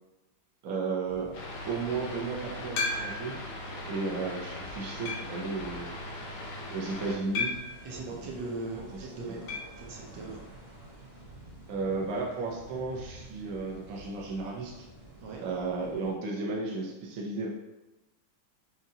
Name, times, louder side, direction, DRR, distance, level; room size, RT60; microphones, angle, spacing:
voice 1, 0.6-1.3 1.7-3.4 3.9-5.9 6.7-7.6 9.3-9.4 11.7-14.8 15.4-17.5, right 4 dB, 60° right, -2 dB, 1.0 m, -34 dB
sound 1, 1.0-16.1, right 1 dB, 35° right, 1.4 m, -50 dB
sound 2, 1.3-7.1, left 1 dB, 70° left, 0.7 m, -40 dB
sound 3, 2.8-3.5 4.1-4.2 5.1-5.5 7.4-7.8 9.5-9.8 10.0-10.1 10.4-10.5 12.5-12.6, left 4 dB, 90° left, 1.5 m, -33 dB
voice 2, 7.8-10.5 15.2-15.4, right 3 dB, 80° right, -2 dB, 1.5 m, -39 dB
5.5 x 2.4 x 2.7 m, 1.1 s
omnidirectional pair, 2.1 m